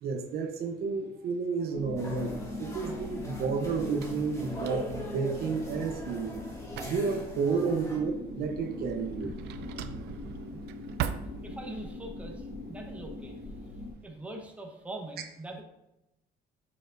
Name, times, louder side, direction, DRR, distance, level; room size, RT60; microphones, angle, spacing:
voice 1, 0.0-6.3 6.8-9.3, right 5 dB, 65° right, 5 dB, 0.9 m, -31 dB
sound 1, 1.7-13.9, left 2 dB, 70° left, 2.4 m, -42 dB
sound 2, 2.0-8.0, equal, 20° left, 2.3 m, -42 dB
Drawer open or close, 2.6-11.9, right 10 dB, 85° right, 0.5 m, -42 dB
voice 2, 11.4-13.4 14.0-15.6, right 2 dB, 10° right, 0 dB, 1.2 m, -43 dB
7.4 x 6.4 x 2.6 m, 0.89 s
cardioid pair, 110°, 17 cm